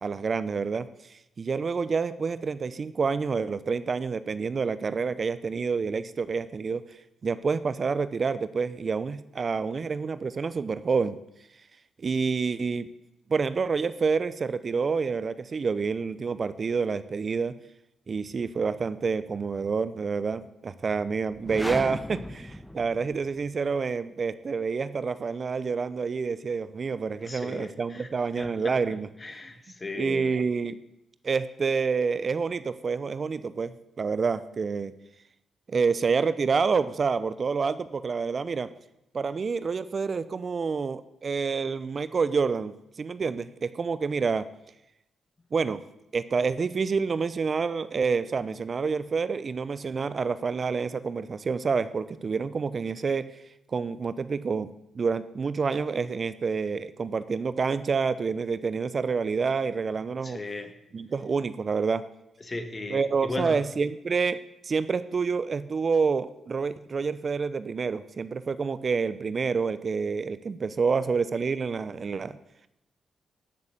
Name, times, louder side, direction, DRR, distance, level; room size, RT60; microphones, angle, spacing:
voice 1, 0.0-6.8 7.2-11.2 12.0-12.9 13.3-17.5 18.1-29.1 29.9-30.8 31.2-34.9 35.7-38.7 39.1-44.5 45.5-45.8 46.1-53.3 53.7-60.4 60.9-62.0 62.9-64.4 64.6-72.4, right 5 dB, 50° right, 14 dB, 0.7 m, -28 dB
sound 1, 21.3-23.4, left 1 dB, 10° left, 1.3 m, -36 dB
voice 2, 27.2-28.1 28.4-30.3 60.2-60.7 62.4-63.7, left 2 dB, 35° left, 8 dB, 2.0 m, -37 dB
13.0 x 6.6 x 8.3 m, 0.87 s
supercardioid pair, 45°, 0 cm